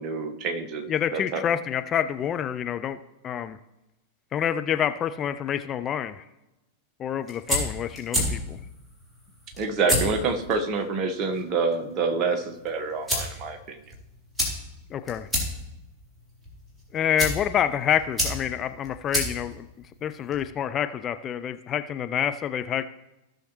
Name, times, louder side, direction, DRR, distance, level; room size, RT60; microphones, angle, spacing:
voice 1, 0.0-1.4 9.6-13.9, right 4 dB, 35° right, 5 dB, 1.3 m, -27 dB
voice 2, 0.9-3.0 3.2-3.6 4.3-6.2 7.0-8.6 14.9-15.3 16.9-19.7 20.0-22.9, left 9 dB, 30° left, 10 dB, 0.4 m, -27 dB
sound 1, 7.1-20.5, left 1 dB, 5° right, 3.5 m, -32 dB
16.0 x 6.4 x 3.1 m, 0.95 s
figure-of-eight pair, 90°, 0 cm